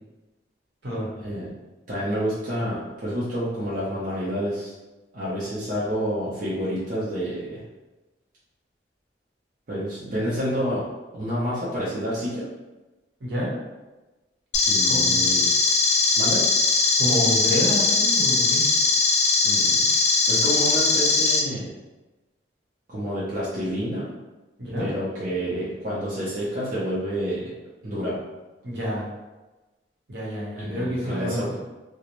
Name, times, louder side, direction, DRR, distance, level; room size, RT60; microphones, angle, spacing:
voice 1, 1.2-1.5 1.9-4.7 5.1-7.6 9.7-10.9 11.1-12.5 14.7-15.5 16.2-16.4 19.4-19.9 20.3-21.7 22.9-24.1 24.8-27.5 27.8-28.2 30.6-31.5, equal, 50° right, -9 dB, 0.6 m, -28 dB
voice 2, 13.2-13.5 14.8-15.3 17.0-18.7 24.6-24.9 28.6-29.1 30.1-31.5, equal, 70° right, -6 dB, 0.9 m, -28 dB
sound 1, 14.5-21.4, left 4 dB, 45° left, 0.4 m, -20 dB
2.4 x 2.1 x 2.9 m, 1.1 s
head